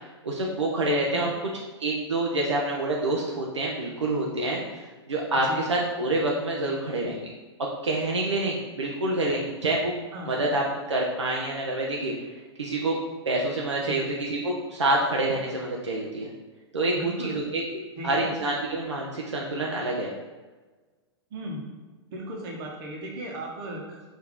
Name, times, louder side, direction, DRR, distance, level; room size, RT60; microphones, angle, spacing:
voice 1, 0.2-1.3 1.8-4.8 5.1-7.3 7.8-9.9 10.3-12.1 12.6-13.0 13.2-16.3 16.7-17.6 18.0-20.1, right 2 dB, 90° right, -2 dB, 0.6 m, -27 dB
voice 2, 16.9-17.4 18.0-18.3 21.3-21.6 22.1-24.1, right 1 dB, 55° right, 0 dB, 1.2 m, -36 dB
4.7 x 2.9 x 3.6 m, 1.3 s
hypercardioid pair, 105°, 14 cm